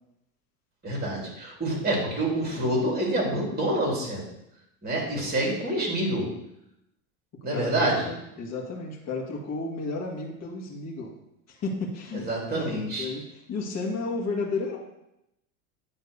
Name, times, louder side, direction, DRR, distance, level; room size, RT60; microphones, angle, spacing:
voice 1, 0.8-4.2 4.8-6.3 7.4-8.1 12.1-13.1, right 1 dB, 20° right, -2 dB, 3.6 m, -27 dB
voice 2, 7.5-11.1 11.5-14.8, left 3 dB, 40° left, -2 dB, 1.9 m, -33 dB
9.4 x 3.5 x 6.8 m, 0.84 s
supercardioid pair, 105°, 43 cm